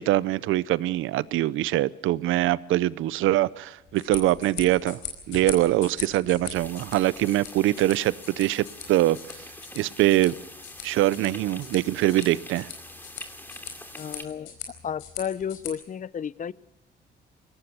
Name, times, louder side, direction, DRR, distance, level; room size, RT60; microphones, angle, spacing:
voice 1, 0.0-5.0 5.3-9.2 9.7-10.3 10.8-12.7, right 15 dB, 90° right, 19 dB, 0.7 m, -23 dB
sound 1, 3.8-15.7, left 8 dB, 90° left, 4.8 m, -41 dB
sound 2, 6.5-14.2, left 1 dB, 10° left, 2.7 m, -44 dB
voice 2, 14.0-14.6 14.8-16.5, left 8 dB, 40° left, 19 dB, 0.7 m, -32 dB
22.0 x 18.0 x 6.9 m, 0.98 s
cardioid pair, 90°, 20 cm